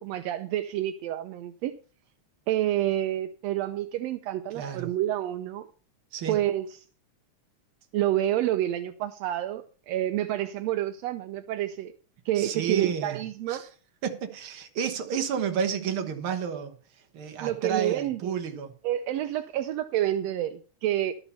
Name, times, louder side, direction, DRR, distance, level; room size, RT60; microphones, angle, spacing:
voice 1, 0.0-1.8 2.5-5.7 6.3-6.7 7.9-11.9 12.2-13.6 17.4-18.4 18.8-21.1, right 13 dB, 80° right, 1.5 m, -28 dB
voice 2, 4.5-4.9 6.1-6.4 12.4-13.7 14.0-16.7 17.1-18.7, right 7 dB, 50° right, 1.8 m, -31 dB
12.0 x 7.0 x 5.6 m
omnidirectional pair, 3.6 m